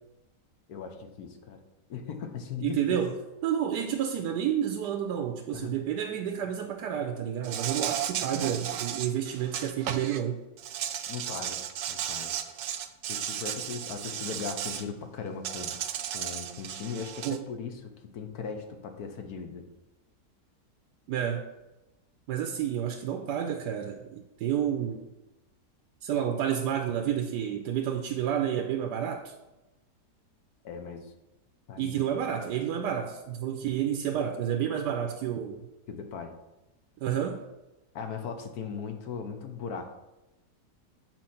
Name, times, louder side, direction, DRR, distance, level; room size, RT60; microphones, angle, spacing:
voice 1, 0.7-1.6 1.9-3.1 5.5-5.7 11.1-11.6 11.9-12.3 13.1-15.8 16.1-19.7 30.6-31.1 31.7-32.1 35.9-36.3 37.9-39.9, left 6 dB, 70° left, 6 dB, 1.3 m, -38 dB
voice 2, 2.6-10.4 17.2-17.4 21.1-21.4 22.3-25.0 26.0-29.3 31.8-35.6 37.0-37.4, right 9 dB, 85° right, 4 dB, 1.2 m, -30 dB
Insect, 7.4-10.2 10.6-14.8 15.4-17.4, right 10 dB, 65° right, 0.8 m, -34 dB
7.5 x 4.5 x 5.7 m, 0.99 s
omnidirectional pair, 1.7 m